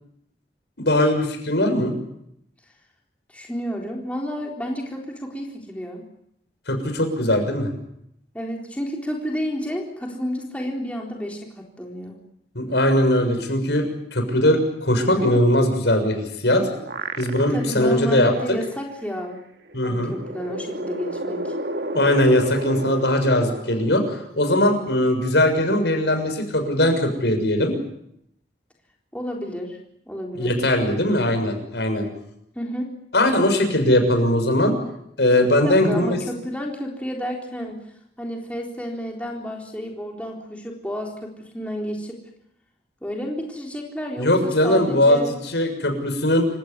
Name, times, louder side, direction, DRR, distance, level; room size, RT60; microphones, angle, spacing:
voice 1, 0.8-1.9 6.7-7.7 12.5-13.8 14.1-16.7 17.2-18.3 19.7-20.1 21.9-27.7 30.3-32.1 33.1-34.8 35.2-36.2 44.2-45.2 45.5-46.5, left 1 dB, 85° left, 5 dB, 6.8 m, -20 dB
voice 2, 3.3-6.0 8.3-12.2 15.1-15.3 17.5-19.4 19.8-21.6 29.1-29.8 30.1-30.6 32.5-32.9 35.6-37.8 38.2-42.2 43.0-45.3, equal, 10° left, 0 dB, 3.9 m, -31 dB
sound 1, 16.2-17.8 18.3-18.4 19.7-24.5, right 2 dB, 75° right, 1.9 m, -32 dB
28.0 x 16.5 x 9.7 m, 0.76 s
head